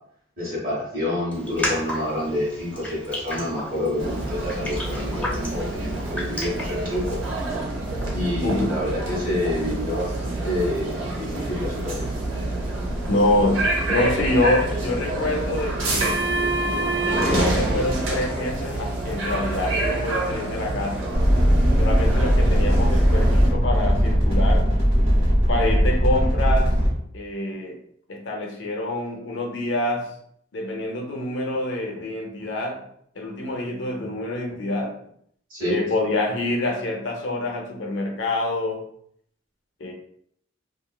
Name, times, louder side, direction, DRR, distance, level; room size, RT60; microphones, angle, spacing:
voice 1, 0.4-7.2 8.1-12.1 35.5-35.8, left 1 dB, 45° right, 1.2 m, -28 dB
Raindrop, 1.3-7.5, left 1 dB, 10° left, 0.6 m, -34 dB
sound 1, 4.0-23.5, right 2 dB, 90° right, 0.7 m, -27 dB
voice 2, 13.1-16.2 17.1-21.1 21.8-24.8 25.5-26.7 27.1-27.8 28.1-30.1 30.5-32.8 33.2-35.0 35.7-38.8 39.8-39.9, left 1 dB, 70° left, 0.5 m, -26 dB
sound 2, 21.1-26.9, equal, 30° right, 1.0 m, -19 dB
3.1 x 2.5 x 2.2 m
head